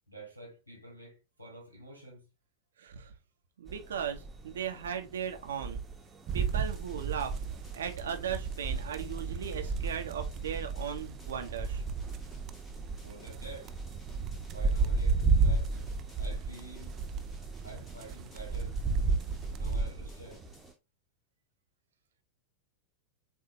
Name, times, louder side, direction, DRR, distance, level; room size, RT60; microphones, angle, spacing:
voice 1, 0.1-2.3 13.0-13.7 14.5-17.0 17.6-18.8 19.4-20.5, right 2 dB, 85° left, 1.5 m, -49 dB
voice 2, 2.8-3.1 3.6-5.8 6.3-7.4 7.7-11.8, right 8 dB, 65° right, 0.8 m, -37 dB
sound 1, 3.7-20.7, right 3 dB, 15° right, 1.0 m, -33 dB
sound 2, 6.3-19.8, right 7 dB, 35° right, 0.4 m, -40 dB
sound 3, 6.5-20.8, equal, 20° left, 1.3 m, -54 dB
6.8 x 2.7 x 2.7 m
figure-of-eight pair, 90°, 0 cm